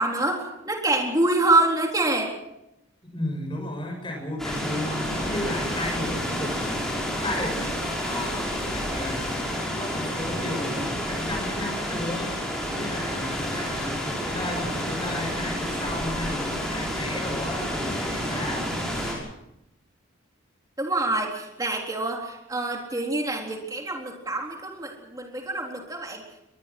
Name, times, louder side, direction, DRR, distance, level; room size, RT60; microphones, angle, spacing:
voice 1, 0.0-2.3 20.8-26.2, right 2 dB, 15° right, 1 dB, 3.9 m, -26 dB
voice 2, 3.0-7.6 8.0-9.5 9.8-12.4 12.7-18.7, left 1 dB, 25° left, 2 dB, 7.2 m, -34 dB
sound 1, 4.4-19.2, equal, ahead, 6.3 m, -29 dB
23.5 x 20.0 x 6.2 m, 0.87 s
head